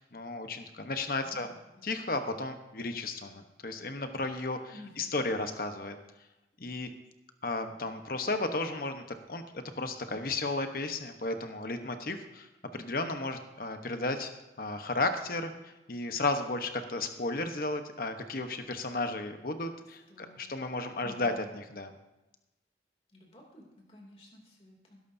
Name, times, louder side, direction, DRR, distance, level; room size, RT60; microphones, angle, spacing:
voice 1, 0.0-1.5 1.8-6.0 6.6-6.9 7.4-14.3 14.6-21.9, left 2 dB, 55° left, 7 dB, 1.1 m, -34 dB
voice 2, 1.2-1.6 4.7-5.2 20.1-20.5 21.0-21.4 23.1-25.0, left 1 dB, 35° left, -1 dB, 2.8 m, -52 dB
19.5 x 11.0 x 2.7 m, 1.0 s
head